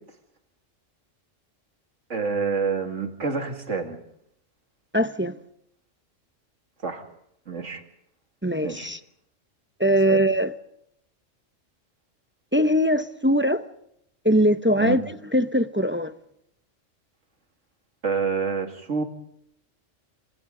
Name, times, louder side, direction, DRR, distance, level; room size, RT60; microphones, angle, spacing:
voice 1, 2.1-4.0 6.8-7.0 7.5-7.8 8.6-8.9 10.1-10.2 14.8-15.0 18.0-19.0, right 5 dB, 70° right, 2.6 m, -27 dB
voice 2, 4.9-5.4 8.4-9.0 9.8-10.5 12.5-13.6 14.2-15.0 15.3-16.1, equal, 10° right, 0.6 m, -21 dB
28.5 x 26.5 x 3.9 m
omnidirectional pair, 1.3 m